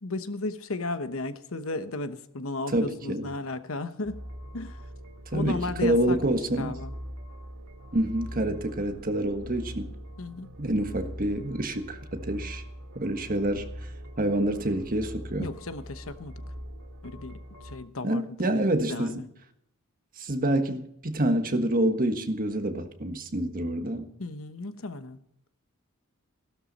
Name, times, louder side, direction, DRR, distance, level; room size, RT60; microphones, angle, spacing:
voice 1, 0.0-4.2 4.5-4.8 5.3-6.9 10.2-10.5 15.4-16.4 17.0-17.4 17.6-19.2 24.2-25.2, left 2 dB, 70° left, 1.1 m, -35 dB
voice 2, 2.7-3.3 5.3-6.7 7.9-9.9 10.6-12.6 12.9-13.7 14.2-15.5 18.0-19.2 20.2-24.1, right 1 dB, 40° right, 1.5 m, -27 dB
sound 1, 4.0-17.8, equal, 75° right, 2.5 m, -42 dB
16.5 x 12.5 x 4.2 m
head